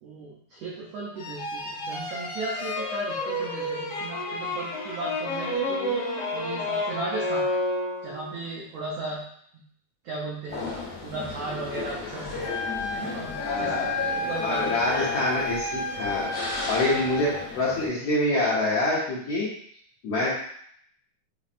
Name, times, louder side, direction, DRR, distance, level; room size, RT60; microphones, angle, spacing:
voice 1, 0.0-6.0 6.3-7.6 8.0-9.2 9.5-9.6 10.0-10.7 11.0-12.5 12.9-14.8 16.9-17.0, right 2 dB, 90° right, -4 dB, 1.4 m, -36 dB
sound 1, 1.2-8.3, left 1 dB, 90° left, 1.2 m, -30 dB
sound 2, 10.5-17.9, left 3 dB, 35° left, 1.0 m, -35 dB
Wind instrument woodwind instrument, 12.4-17.4, left 3 dB, 55° left, 2.0 m, -32 dB
voice 2, 13.4-14.0 14.4-16.3 16.7-19.5 20.0-20.3, left 2 dB, 75° left, -8 dB, 1.4 m, -26 dB
5.7 x 2.0 x 2.5 m, 0.66 s
omnidirectional pair, 3.6 m